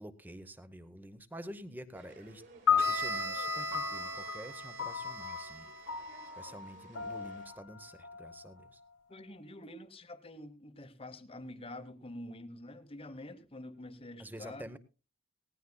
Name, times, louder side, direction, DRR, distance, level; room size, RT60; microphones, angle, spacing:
voice 1, 0.0-2.4 2.7-6.1 6.3-8.8 14.2-14.8, equal, 10° right, 0.8 m, -48 dB
sound 1, 1.9-7.5, right 2 dB, 55° right, 5.3 m, -58 dB
sound 2, 2.7-9.1, left 7 dB, 70° left, 1.6 m, -35 dB
Bowed string instrument, 2.8-6.5, right 4 dB, 75° right, 3.8 m, -41 dB
voice 2, 9.1-14.6, left 1 dB, 25° left, 0.9 m, -47 dB
19.5 x 16.0 x 2.2 m
head